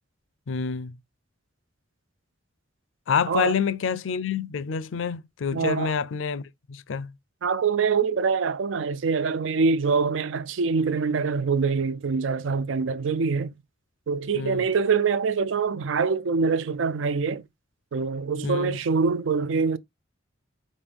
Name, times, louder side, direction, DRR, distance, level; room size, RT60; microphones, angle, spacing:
voice 1, 0.5-1.0 3.1-6.4 6.7-7.1 14.3-14.6 18.4-18.8, left 6 dB, 80° left, 0.5 m, -27 dB
voice 2, 5.5-5.9 7.4-13.5 14.1-17.4 17.9-19.8, right 5 dB, 75° right, 0.4 m, -24 dB
5.3 x 2.6 x 3.4 m
head